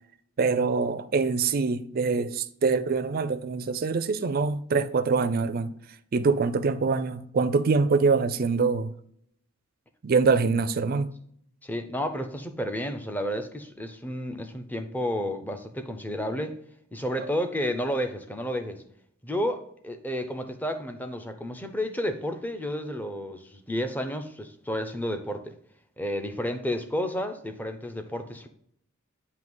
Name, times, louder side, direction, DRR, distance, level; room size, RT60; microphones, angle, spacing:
voice 1, 0.4-5.7 6.1-8.9 10.0-11.1, right 4 dB, 45° right, 0.4 m, -24 dB
voice 2, 11.6-16.6 16.9-18.8 19.2-25.5 26.0-28.5, equal, 10° left, 0.5 m, -31 dB
7.8 x 2.8 x 5.3 m
head